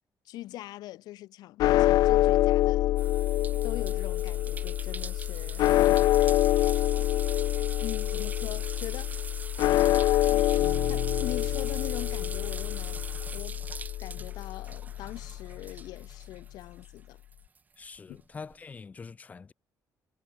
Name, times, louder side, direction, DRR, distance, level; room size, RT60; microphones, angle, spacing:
voice 1, 0.3-2.9 3.6-5.7 6.7-6.8 7.8-9.4 10.3-10.6 10.9-13.0 13.3-13.6 14.0-17.2 18.1-18.2, left 15 dB, 85° left, 1.6 m, -42 dB
sound 1, 1.6-15.8, left 15 dB, 70° left, 0.4 m, -26 dB
sound 2, 3.0-17.0 17.3-18.5, right 5 dB, 25° right, 1.8 m, -43 dB
Guitar, 10.5-13.7, right 11 dB, 60° right, 1.3 m, -45 dB
voice 2, 17.8-19.5, left 5 dB, 25° left, 1.3 m, -44 dB
cardioid pair, 160°, 7 cm